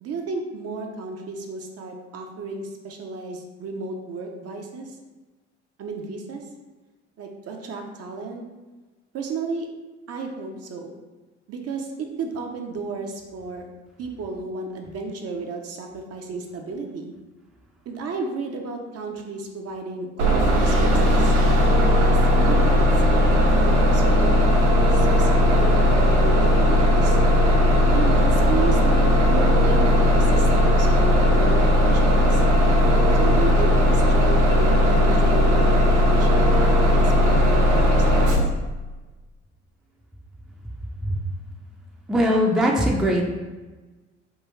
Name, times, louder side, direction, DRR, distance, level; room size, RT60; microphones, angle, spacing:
voice 1, 0.0-4.9 5.8-6.4 7.2-8.4 9.1-9.7 10.1-11.0 11.5-11.9 12.2-13.7 14.0-17.1 17.9-21.3 21.9-27.2 27.9-32.4 33.1-36.6 37.0-38.3, right 4 dB, 45° right, 2 dB, 0.6 m, -33 dB
Bus, 20.2-38.4, left 1 dB, 85° right, 0.6 m, -17 dB
voice 2, 42.1-43.3, equal, ahead, 0 dB, 0.4 m, -20 dB
3.5 x 2.3 x 3.1 m, 1.2 s
hypercardioid pair, 55°, 34 cm